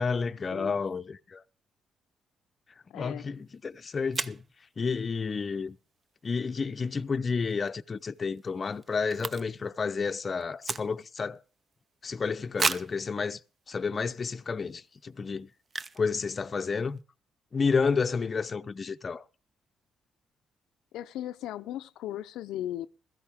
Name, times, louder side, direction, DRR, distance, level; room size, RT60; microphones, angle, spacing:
voice 1, 0.0-1.4 2.9-4.4 4.8-5.8 6.2-11.4 12.0-13.4 13.7-15.5 16.0-17.0 17.5-19.2, left 5 dB, 35° left, 0.6 m, -30 dB
voice 2, 0.5-0.8 2.9-3.3 20.9-22.9, left 12 dB, 90° left, 0.5 m, -37 dB
sound 1, 3.5-3.6 4.1-4.5 7.4-7.7 8.0-8.1 8.3-9.8 10.0-11.3 11.7-11.8 12.6-13.0 13.7-13.8 14.3-14.5 15.7-16.1 16.4-16.5 16.6-17.0, right 4 dB, 35° right, 0.6 m, -33 dB
16.0 x 13.5 x 3.6 m
cardioid pair, 90°, 0 cm